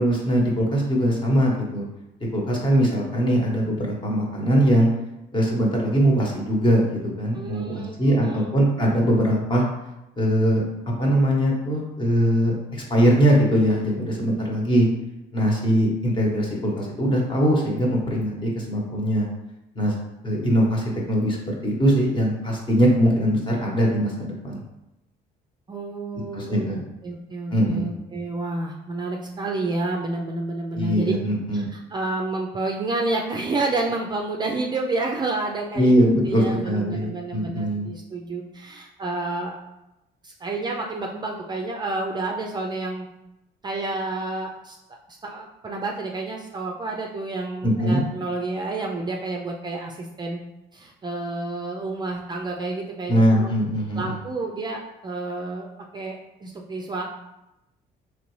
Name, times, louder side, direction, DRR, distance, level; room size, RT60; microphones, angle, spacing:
voice 1, 0.0-1.8 2.3-4.9 5.3-9.6 10.2-10.6 11.0-14.9 15.3-19.3 19.7-19.9 20.2-24.6 26.3-26.8 27.5-27.9 30.7-31.7 35.7-37.9 47.6-48.0 53.1-54.2, equal, 30° left, -1 dB, 1.1 m, -21 dB
voice 2, 7.3-8.5 25.7-31.1 31.5-35.9 36.2-39.6 40.2-43.1 43.6-44.8 45.2-50.4 50.7-53.5 53.9-55.7 55.9-57.0, right 2 dB, 25° right, 0 dB, 0.4 m, -29 dB
3.8 x 3.1 x 3.1 m, 0.91 s
cardioid pair, 110°, 17 cm